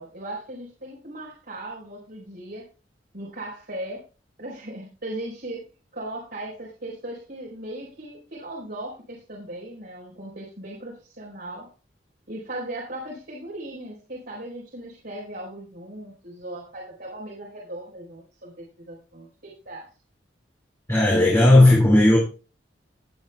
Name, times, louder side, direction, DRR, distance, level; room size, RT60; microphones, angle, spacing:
voice 1, 0.0-2.6 3.1-4.0 4.4-5.6 5.9-11.7 12.3-19.9, right 1 dB, 60° right, -4 dB, 4.3 m, -38 dB
voice 2, 20.9-22.2, left 1 dB, 15° left, -3 dB, 2.6 m, -15 dB
19.5 x 7.9 x 2.3 m, 0.34 s
head